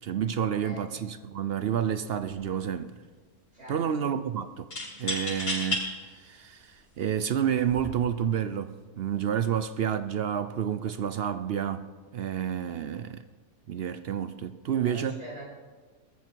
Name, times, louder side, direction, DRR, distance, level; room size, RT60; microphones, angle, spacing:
voice 1, 0.0-3.0 3.7-4.7 5.0-13.2 13.7-15.2, right 9 dB, 65° right, 0.6 m, -30 dB
sound 1, 1.6-1.8 2.1-2.8 4.7-5.8 6.5-6.6 7.5-7.9, left 1 dB, 75° left, 6.6 m, -32 dB
voice 2, 3.5-3.8 14.8-15.5, right 1 dB, 40° right, 5.7 m, -44 dB
20.5 x 14.0 x 4.6 m
omnidirectional pair, 1.7 m